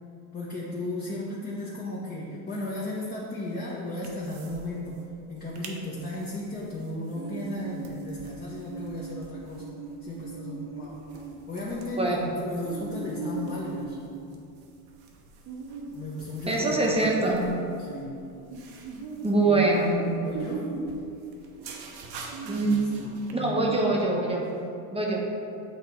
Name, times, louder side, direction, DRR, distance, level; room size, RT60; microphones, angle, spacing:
voice 1, 0.3-5.0 5.3-9.7 10.0-11.0 11.5-14.0 15.9-17.2 17.8-18.1 19.4-19.9 20.2-20.7 22.6-23.8, left 1 dB, 20° left, -6 dB, 0.9 m, -35 dB
sound 1, 4.0-4.7 4.9-5.0 5.4-5.8 6.2-23.3, right 4 dB, 50° right, 0.9 m, -40 dB
voice 2, 12.0-12.3 16.5-17.4 19.2-20.0 22.4-22.7 23.3-24.4 24.9-25.3, right 2 dB, 10° right, -2 dB, 0.9 m, -24 dB
8.1 x 2.8 x 4.2 m, 2.6 s
supercardioid pair, 90°, 48 cm